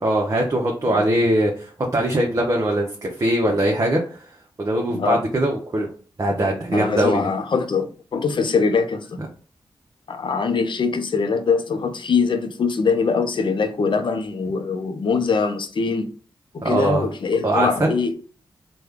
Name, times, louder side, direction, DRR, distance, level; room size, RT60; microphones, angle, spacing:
voice 1, 0.0-4.2 4.6-5.9 6.2-7.3 16.6-17.1 17.4-17.9, right 1 dB, 35° right, 0.7 m, -21 dB
voice 2, 4.9-5.2 6.7-9.2 10.1-16.1 16.5-18.1, left 5 dB, 60° left, 0.6 m, -22 dB
3.2 x 2.2 x 3.5 m
supercardioid pair, 40°, 9 cm